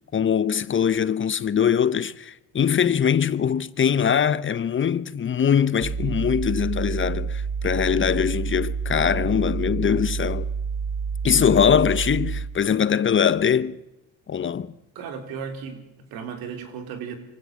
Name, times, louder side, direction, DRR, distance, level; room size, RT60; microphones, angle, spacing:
voice 1, 0.1-10.5 11.2-13.8 14.3-14.7, left 8 dB, 35° left, 0.8 m, -22 dB
sound 1, 5.8-12.6, right 5 dB, 70° right, 1.9 m, -28 dB
voice 2, 15.0-17.2, right 6 dB, 85° right, 3.7 m, -35 dB
24.5 x 16.0 x 7.6 m
cardioid pair, 90°, 35 cm